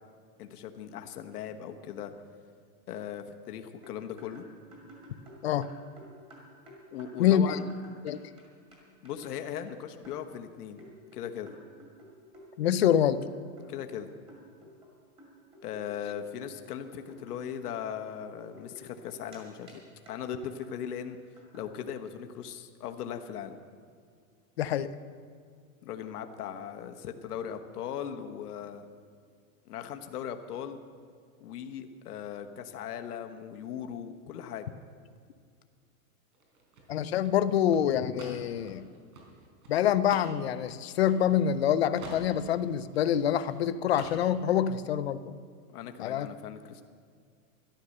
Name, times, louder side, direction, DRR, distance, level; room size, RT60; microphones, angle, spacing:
voice 1, 0.4-2.1 2.9-4.4 6.9-7.6 9.0-10.9 11.1-11.5 13.7-14.1 15.6-19.8 20.1-21.2 21.5-23.6 25.8-28.8 29.6-30.8 31.4-34.7 45.7-46.8, left 9 dB, 80° left, 6 dB, 1.3 m, -39 dB
sound 1, 3.8-8.4 8.7-8.8 9.0-9.3 10.0-10.3 10.8-14.0 14.3-14.9 15.2-19.4 19.7-19.8 20.1-20.2 20.4-20.7 21.0-21.1 21.4-21.6, equal, 10° right, 2.3 m, -52 dB
voice 2, 7.2-7.6 8.0-8.2 12.6-13.2 24.6-24.9 36.9-38.8 39.7-45.3 46.0-46.3, left 10 dB, 45° left, 13 dB, 0.5 m, -26 dB
sound 2, 36.3-41.6 41.9-43.6 43.9-44.6, right 3 dB, 70° right, 4.1 m, -48 dB
13.0 x 11.5 x 6.5 m, 2.1 s
supercardioid pair, 180°, 45 cm